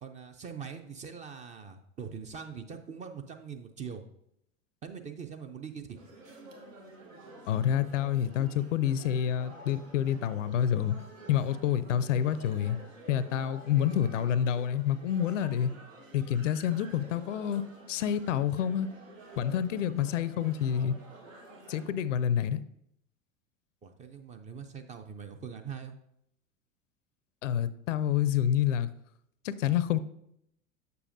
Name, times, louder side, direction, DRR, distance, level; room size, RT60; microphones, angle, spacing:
voice 1, 0.0-4.0 4.8-6.0 23.8-26.0, right 6 dB, 20° right, 7 dB, 0.4 m, -42 dB
sound 1, 5.9-21.9, right 2 dB, 85° right, 1.1 m, -50 dB
voice 2, 7.5-11.0 11.3-12.8 13.1-15.7 16.1-18.9 19.4-20.9 21.7-22.6 27.4-28.9 29.4-30.0, left 9 dB, 75° left, 16 dB, 0.5 m, -28 dB
6.8 x 6.8 x 2.6 m, 0.75 s
figure-of-eight pair, 85°, 38 cm